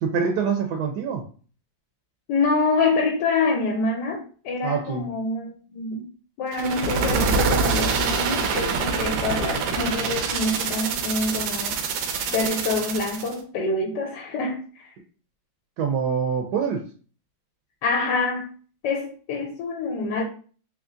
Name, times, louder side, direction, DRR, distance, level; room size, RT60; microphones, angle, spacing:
voice 1, 0.0-1.2 4.6-5.1 15.8-16.8, right 6 dB, 75° right, 1.0 m, -25 dB
voice 2, 2.3-6.0 6.4-11.8 12.3-14.9 17.8-18.5 18.8-20.2, left 3 dB, 75° left, 1.2 m, -26 dB
sound 1, 6.5-13.3, right 5 dB, 90° right, 1.3 m, -25 dB
3.5 x 3.0 x 2.5 m
omnidirectional pair, 2.0 m